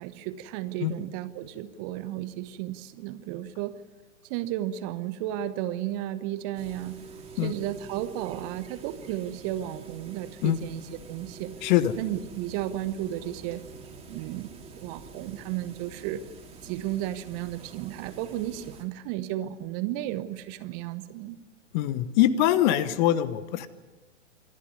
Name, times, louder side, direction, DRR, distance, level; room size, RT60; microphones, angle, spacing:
voice 1, 0.0-3.8 4.3-7.0 7.4-11.5 12.0-13.6 14.1-16.2 16.6-21.4, right 13 dB, 35° right, 13 dB, 1.0 m, -33 dB
sound 1, 6.5-18.8, right 4 dB, 15° right, 2.6 m, -46 dB
voice 2, 11.6-11.9 21.7-23.7, left 12 dB, 40° left, 14 dB, 1.1 m, -23 dB
26.5 x 11.5 x 9.8 m, 1.3 s
hypercardioid pair, 115°, 36 cm